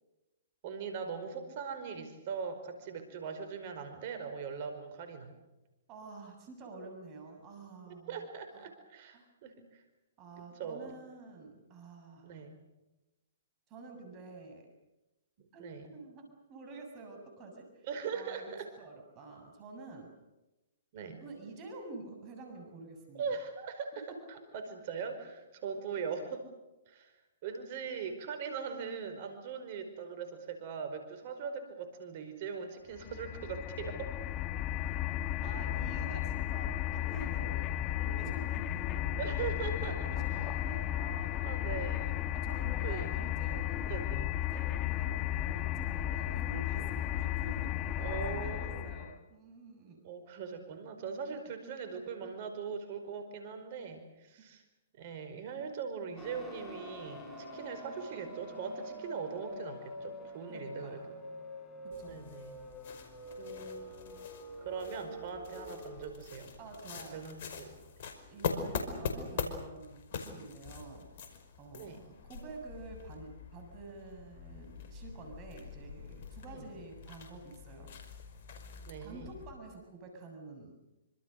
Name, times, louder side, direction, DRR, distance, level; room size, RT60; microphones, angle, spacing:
voice 1, 0.6-5.3 7.9-9.8 10.5-10.9 12.2-12.6 15.4-15.9 17.8-18.7 20.9-21.2 23.1-24.1 24.5-26.5 26.9-27.2 27.4-34.2 39.2-39.9 41.4-42.2 42.8-43.1 43.9-44.3 48.0-49.0 50.0-54.6 54.9-61.0 62.1-62.6 63.4-64.1 64.6-66.5 67.1-67.8 71.7-72.0 76.4-76.7 78.9-79.3, right 6 dB, 45° right, 7 dB, 5.0 m, -41 dB
voice 2, 5.9-8.3 8.5-8.6 9.1-9.3 10.2-12.5 13.7-14.7 15.5-20.1 21.2-23.4 35.4-39.5 39.8-41.9 42.3-44.0 44.4-50.0 51.3-51.4 60.5-61.1 61.8-62.2 66.6-67.2 68.3-71.1 71.6-78.0 79.0-80.8, right 3 dB, 30° right, 3 dB, 7.1 m, -49 dB
sound 1, 33.0-49.2, left 12 dB, 30° left, 1.4 m, -34 dB
sound 2, 56.2-66.1, left 1 dB, 15° left, 6.9 m, -46 dB
sound 3, 61.9-79.5, left 5 dB, 55° left, 5.3 m, -43 dB
27.0 x 26.0 x 6.7 m, 1.0 s
hypercardioid pair, 130°, 0 cm